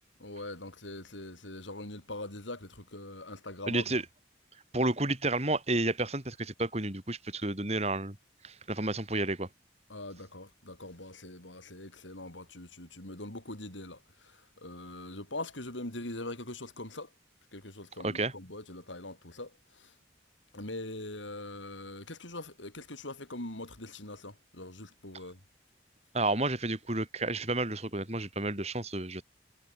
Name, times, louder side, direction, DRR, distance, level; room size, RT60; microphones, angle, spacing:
voice 1, 0.2-3.9 9.9-17.1 17.5-19.9 20.5-25.4, left 2 dB, 85° left, 6.2 m, -42 dB
voice 2, 3.7-4.0 4.7-8.2 8.4-9.5 18.0-18.3 26.1-29.2, right 2 dB, 35° right, 3.7 m, -31 dB
head